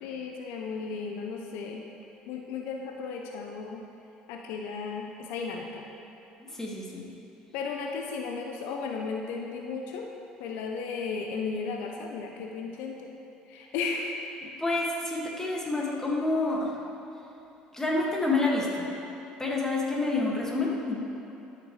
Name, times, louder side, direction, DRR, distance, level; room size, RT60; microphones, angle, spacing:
voice 1, 0.0-1.8 2.3-3.8 4.3-5.9 7.5-10.1 10.4-13.0 13.5-14.2, left 5 dB, 75° left, 2 dB, 0.6 m, -35 dB
voice 2, 6.5-7.1 14.6-16.7 17.7-18.8 19.4-21.0, left 2 dB, 15° left, -4 dB, 2.0 m, -28 dB
12.5 x 6.7 x 3.2 m, 2.9 s
supercardioid pair, 75°, 3 cm